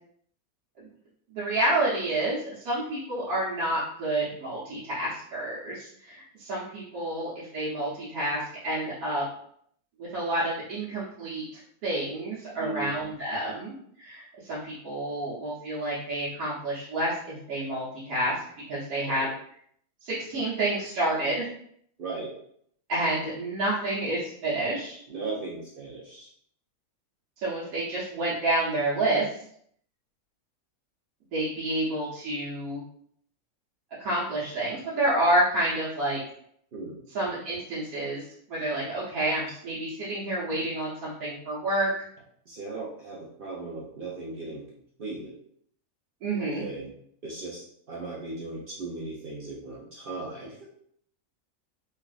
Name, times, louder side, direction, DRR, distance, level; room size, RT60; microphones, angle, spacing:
voice 1, 1.3-9.2 10.0-11.4 11.8-19.3 20.0-21.5 22.9-24.9 27.4-29.3 31.3-32.8 34.0-36.2 37.1-38.2 38.5-41.9 46.2-46.6, right 1 dB, 85° right, -9 dB, 1.3 m, -29 dB
voice 2, 12.6-12.9 19.1-19.3 22.0-22.3 25.1-26.3 36.7-37.0 42.5-44.6 45.0-45.3 46.4-46.9 47.2-47.6 47.9-50.6, right 3 dB, 60° right, -4 dB, 0.6 m, -37 dB
3.3 x 2.5 x 2.3 m, 0.67 s
omnidirectional pair, 1.5 m